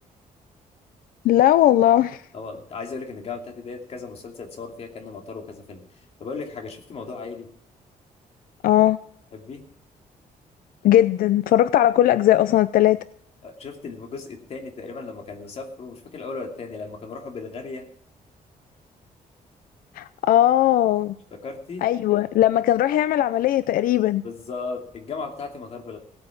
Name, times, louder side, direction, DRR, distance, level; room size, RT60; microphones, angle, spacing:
voice 1, 1.2-2.2 8.6-9.0 10.8-13.0 20.0-21.2 21.8-24.2, left 13 dB, 85° left, 0.5 m, -18 dB
voice 2, 2.3-5.8 6.2-7.5 9.3-9.6 13.4-17.8 21.3-21.8 24.2-26.0, left 4 dB, 45° left, 2.7 m, -36 dB
17.0 x 8.9 x 5.9 m
cardioid pair, 165°, 14 cm